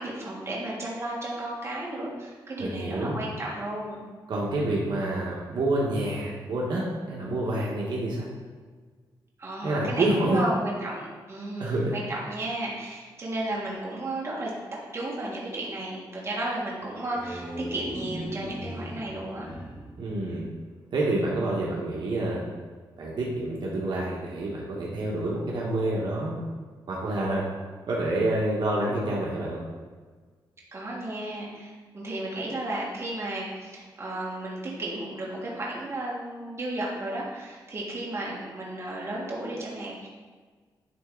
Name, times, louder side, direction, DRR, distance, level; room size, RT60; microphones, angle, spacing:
voice 1, 0.0-4.0 9.4-14.5 14.9-19.4 30.7-40.1, right 1 dB, 30° right, -4 dB, 1.6 m, -33 dB
voice 2, 2.6-3.2 4.3-8.2 9.6-10.4 11.6-11.9 20.0-20.4 20.9-22.4 23.0-26.4 26.9-27.4 27.9-29.6, right 1 dB, 65° right, -4 dB, 1.3 m, -28 dB
sound 1, 16.8-21.0, right 1 dB, 15° right, 1.3 m, -38 dB
10.5 x 3.5 x 3.8 m, 1.5 s
wide cardioid pair, 150°, 8 cm